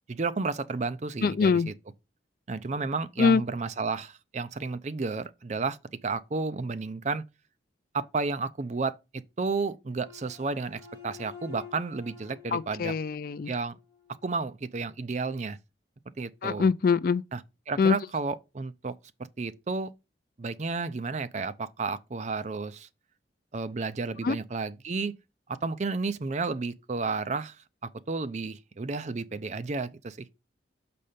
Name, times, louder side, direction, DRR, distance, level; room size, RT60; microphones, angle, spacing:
voice 1, 0.1-1.7 2.5-5.8 6.0-7.2 7.9-9.0 9.4-12.9 13.5-13.8 14.2-15.6 16.2-16.7 17.3-17.4 17.7-18.9 19.4-19.9 20.4-22.9 23.5-25.1 25.5-27.6 28.1-30.3, right 4 dB, 40° right, 0.5 m, -32 dB
voice 2, 1.2-1.7 3.2-3.4 12.5-13.5 16.4-17.2 17.8-17.9 24.2-24.4, left 5 dB, 50° left, 0.3 m, -23 dB
sound 1, 10.0-14.3, left 7 dB, 15° right, 2.7 m, -49 dB
6.4 x 4.2 x 5.1 m
head